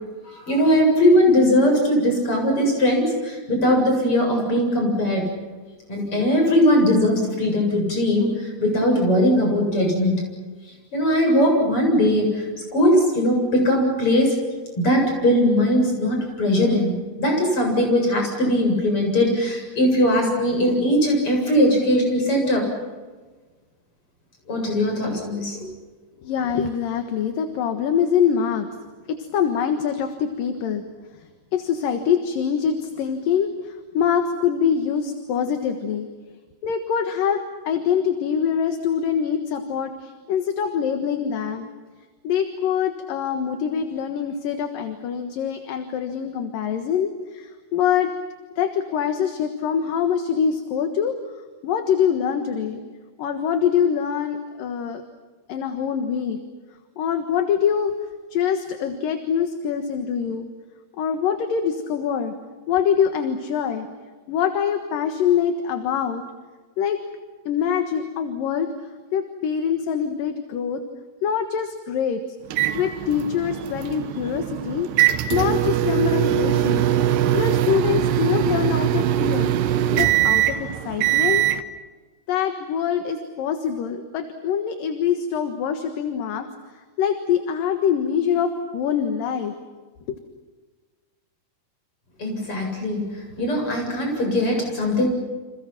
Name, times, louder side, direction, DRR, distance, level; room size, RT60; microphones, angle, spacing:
voice 1, 0.3-5.3 5.9-10.2 10.9-12.4 12.7-14.3 14.8-16.9 17.2-22.7 24.5-25.7 92.2-93.0 93.4-95.1, left 1 dB, 35° left, 2 dB, 8.7 m, -20 dB
voice 2, 26.2-28.7 29.1-30.8 31.5-36.1 36.6-41.7 42.2-48.1 48.6-51.2 51.6-52.8 53.2-55.0 55.5-56.4 57.0-57.9 58.3-60.5 61.0-62.3 62.7-63.9 64.3-66.2 66.8-67.0 67.4-68.7 69.1-70.8 71.2-72.2 72.7-74.9 75.3-76.9 77.3-79.5 79.9-81.5 82.3-86.5 87.0-89.5 90.1-90.2, left 8 dB, 65° left, 7 dB, 3.0 m, -24 dB
sound 1, 72.5-81.6, right 11 dB, 85° right, 3.2 m, -22 dB
30.0 x 28.0 x 6.0 m, 1.3 s
omnidirectional pair, 4.6 m